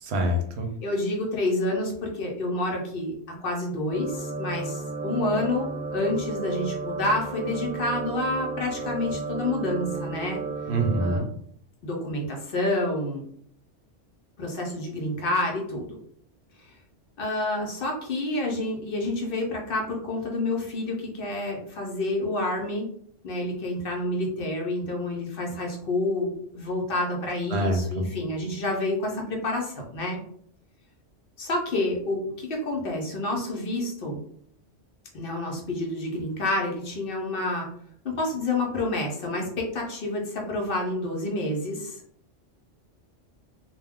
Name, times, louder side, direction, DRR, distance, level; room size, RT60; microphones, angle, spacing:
voice 1, 0.0-0.7 10.7-11.3 27.5-28.1, right 1 dB, 70° right, 4 dB, 0.8 m, -25 dB
voice 2, 0.8-3.1 3.4-10.4 11.0-11.2 11.8-13.2 14.4-16.0 16.6-16.7 17.2-22.9 23.2-30.2 31.4-34.2 35.1-37.7 38.0-41.9, left 2 dB, 55° left, 0 dB, 0.7 m, -28 dB
sound 1, 3.9-11.2, right 3 dB, 50° right, 0.4 m, -33 dB
2.2 x 2.2 x 3.4 m, 0.65 s
omnidirectional pair, 1.2 m